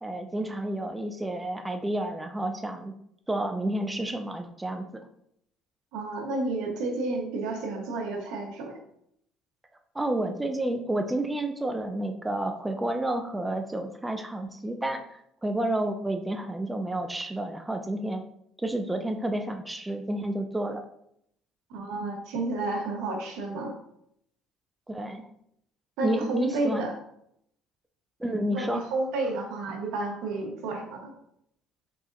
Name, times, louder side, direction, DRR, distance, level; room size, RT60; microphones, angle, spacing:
voice 1, 0.0-2.9 3.3-5.0 9.9-18.2 18.6-20.8 24.9-25.3 26.0-26.9 28.2-28.8, right 1 dB, 10° right, 5 dB, 0.5 m, -30 dB
voice 2, 5.9-8.7 21.7-23.7 26.0-26.9 28.5-31.1, right 2 dB, 80° right, 2 dB, 1.0 m, -31 dB
4.7 x 4.1 x 2.5 m, 0.73 s
supercardioid pair, 85°, 0 cm